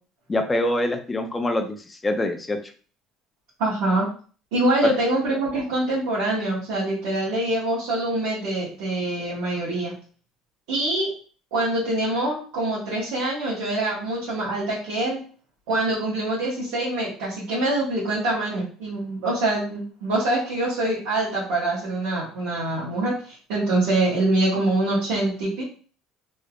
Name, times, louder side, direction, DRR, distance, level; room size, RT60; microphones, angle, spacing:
voice 1, 0.3-2.6, left 1 dB, 20° left, 6 dB, 0.5 m, -25 dB
voice 2, 3.6-4.1 4.5-9.9 10.7-11.1 11.5-15.2 15.7-25.6, right 2 dB, 85° right, -9 dB, 1.2 m, -24 dB
3.1 x 2.8 x 2.4 m, 0.41 s
supercardioid pair, 100°, 0 cm